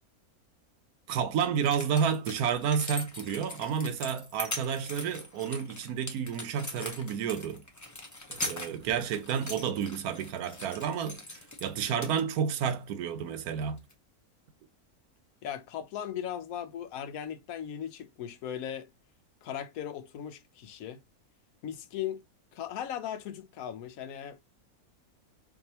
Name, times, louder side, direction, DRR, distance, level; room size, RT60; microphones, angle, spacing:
voice 1, 1.1-7.6 8.3-13.8, right 7 dB, 85° right, 1.2 m, -30 dB
sound 1, 1.2-1.3 1.6-11.7 12.0-12.7 13.8-13.9, left 2 dB, 20° left, 0.6 m, -41 dB
voice 2, 15.4-18.9 19.4-21.0 21.6-22.2 22.5-24.4, left 9 dB, 75° left, 1.0 m, -38 dB
4.8 x 2.6 x 2.7 m
omnidirectional pair, 1.6 m